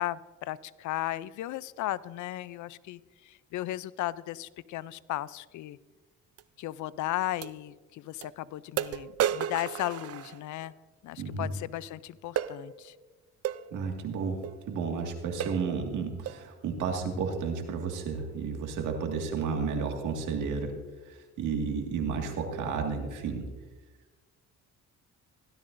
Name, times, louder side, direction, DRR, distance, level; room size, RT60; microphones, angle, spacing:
voice 1, 0.0-5.8 6.6-10.7 11.0-12.9, left 15 dB, 75° left, 19 dB, 0.5 m, -35 dB
sound 1, 6.4-6.5 7.4-7.5 8.2-8.3 8.8-10.7 12.4-12.6 13.4-13.6 14.4-14.6 15.0-15.1 15.4-15.7 16.3-16.5, right 11 dB, 55° right, 0.5 m, -32 dB
voice 2, 11.2-11.5 13.7-20.7 21.1-23.5, right 5 dB, 80° right, 3 dB, 1.9 m, -32 dB
16.5 x 12.5 x 2.6 m, 1.3 s
cardioid pair, 90°, 30 cm